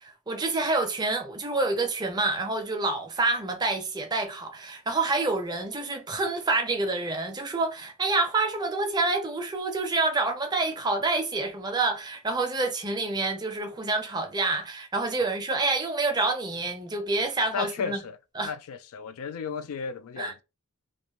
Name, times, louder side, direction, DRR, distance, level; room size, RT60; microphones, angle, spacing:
voice 1, 0.0-18.0 18.4-18.5 20.2-20.3, right 3 dB, 20° right, 0.4 m, -27 dB
voice 2, 17.5-18.2 18.4-20.4, left 6 dB, 75° left, 0.3 m, -34 dB
2.5 x 2.3 x 2.8 m
head